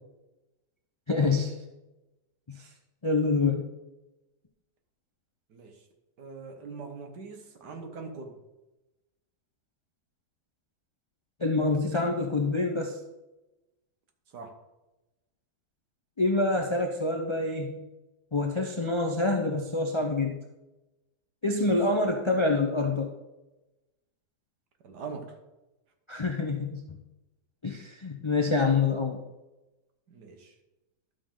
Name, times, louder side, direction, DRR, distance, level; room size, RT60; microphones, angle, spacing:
voice 1, 1.1-1.5 2.6-2.7 3.0-3.7 11.4-13.0 16.2-17.8 18.3-20.4 21.4-23.1 26.1-27.0 27.6-29.2, left 3 dB, 45° left, 3 dB, 0.3 m, -26 dB
voice 2, 5.5-5.8 6.2-8.4 14.3-14.5 21.5-21.8 24.8-25.4 30.1-30.5, right 4 dB, 75° right, 4 dB, 1.8 m, -42 dB
12.0 x 6.6 x 3.8 m, 1.0 s
omnidirectional pair, 1.8 m